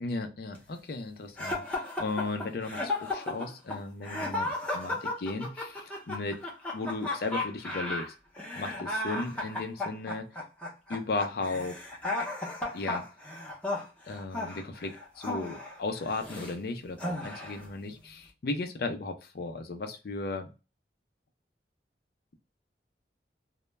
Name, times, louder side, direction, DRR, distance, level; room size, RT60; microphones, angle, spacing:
voice 1, 0.0-6.4 6.7-8.1 8.5-10.3 10.9-11.8 12.7-13.0 14.1-20.5, left 3 dB, 60° left, 7 dB, 0.4 m, -35 dB
sound 1, 1.4-16.5 17.0-17.7, left 2 dB, 5° left, 0.6 m, -34 dB
2.1 x 2.0 x 3.1 m, 0.30 s
head